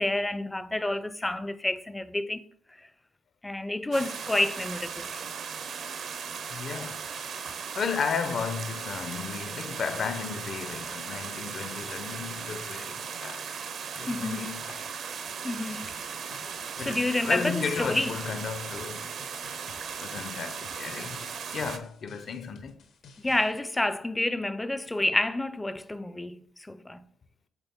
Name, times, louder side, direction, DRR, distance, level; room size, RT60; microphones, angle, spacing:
voice 1, 0.0-2.4 3.4-5.2 14.1-14.6 15.4-15.9 16.8-18.2 23.2-27.1, left 1 dB, 15° left, 0.4 m, -29 dB
sound 1, 3.9-21.8, right 6 dB, 65° right, 0.7 m, -37 dB
voice 2, 6.5-7.5 7.8-13.4 13.9-14.8 16.8-19.1 19.9-21.3 21.5-22.8, left 6 dB, 55° left, 0.6 m, -34 dB
sound 2, 15.8-23.5, left 5 dB, 70° left, 1.0 m, -54 dB
8.1 x 3.8 x 3.6 m
cardioid pair, 90°, 0 cm